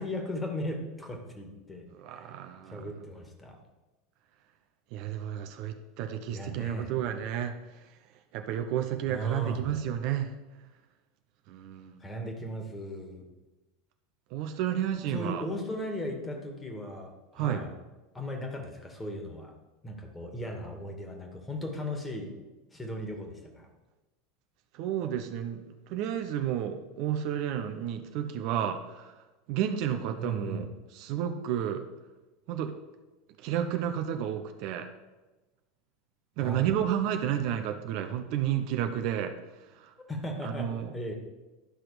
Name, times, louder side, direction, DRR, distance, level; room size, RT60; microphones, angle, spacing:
voice 1, 0.0-1.8 2.1-2.3 2.7-3.6 6.3-6.9 9.1-9.7 12.0-13.3 15.1-17.7 18.1-19.5 19.8-22.3 22.7-23.7 30.2-30.7 36.4-36.7 40.1-40.7 40.9-41.2, equal, 15° left, 3 dB, 2.0 m, -37 dB
voice 2, 1.9-2.9 4.9-7.9 8.3-10.3 11.5-12.0 14.3-15.5 17.3-17.7 24.7-31.9 32.5-32.7 33.4-34.9 36.4-39.9 40.4-40.9, right 10 dB, 55° right, 7 dB, 0.7 m, -32 dB
11.5 x 5.9 x 5.0 m, 1.1 s
figure-of-eight pair, 80°, 0 cm